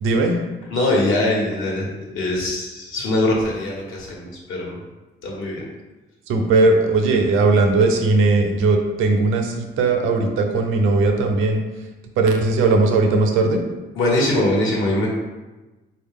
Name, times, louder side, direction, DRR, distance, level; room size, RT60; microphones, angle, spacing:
voice 1, 0.0-0.4 6.3-11.6 12.2-13.6, right 3 dB, 90° right, 3 dB, 0.5 m, -18 dB
voice 2, 0.7-1.9 2.1-4.8 5.2-5.6 13.9-15.1, left 1 dB, 85° left, -3 dB, 1.0 m, -22 dB
3.5 x 2.2 x 3.5 m, 1.1 s
cardioid pair, 90°, 20 cm